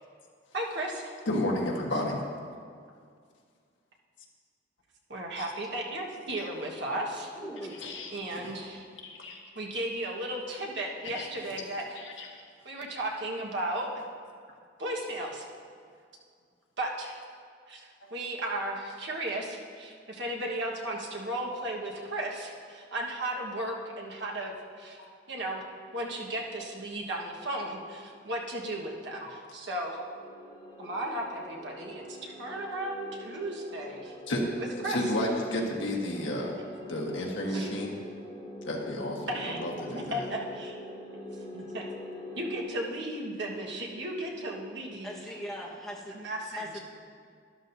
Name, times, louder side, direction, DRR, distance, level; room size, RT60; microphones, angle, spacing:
voice 1, 0.5-1.1 5.1-7.3 8.1-8.8 9.5-12.0 12.6-14.0 14.8-15.4 16.8-17.2 17.7-24.5 24.8-25.0 25.3-25.6 25.9-30.0 30.8-34.1 34.8-35.0 37.5-37.7 39.3-40.8 41.5-41.8 42.4-45.2 46.1-46.8, right 1 dB, 65° right, -1 dB, 1.4 m, -35 dB
voice 2, 1.3-2.2 5.4-5.5 7.8-8.5 9.0-9.4 11.1-11.3 11.9-12.3 18.0-18.1 25.0-25.1 29.2-29.3 34.3-34.5 34.8-36.6 36.9-38.0 38.6-40.2, left 1 dB, 70° left, -1 dB, 1.5 m, -32 dB
voice 3, 7.4-7.9 45.0-46.1 46.5-46.8, equal, ahead, -5 dB, 1.4 m, -40 dB
sound 1, 29.9-42.6, left 1 dB, 30° left, 2.1 m, -44 dB
12.5 x 12.0 x 2.7 m, 2.1 s
head